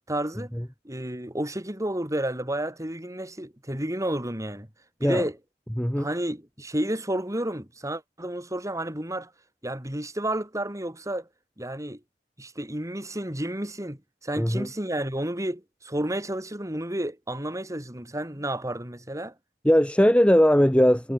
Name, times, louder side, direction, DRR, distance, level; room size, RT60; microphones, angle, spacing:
voice 1, 0.1-0.5 0.8-4.7 5.0-5.4 6.0-9.3 9.6-11.3 11.6-12.0 12.4-19.3, right 1 dB, 20° right, 4.4 m, -31 dB
voice 2, 5.8-6.1 14.4-14.7 19.6-21.1, equal, 5° left, 1.6 m, -20 dB
head